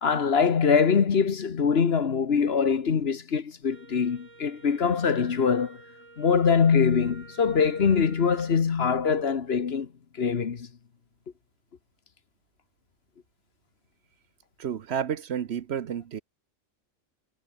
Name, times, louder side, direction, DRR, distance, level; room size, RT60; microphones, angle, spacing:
voice 1, 0.0-5.8 6.2-9.9 10.2-10.7, left 6 dB, 55° left, 1.4 m, -23 dB
Wind instrument woodwind instrument, 3.7-8.6, right 3 dB, 85° right, 3.8 m, -51 dB
voice 2, 14.6-16.2, right 8 dB, 65° right, 1.0 m, -31 dB
omnidirectional pair, 1.3 m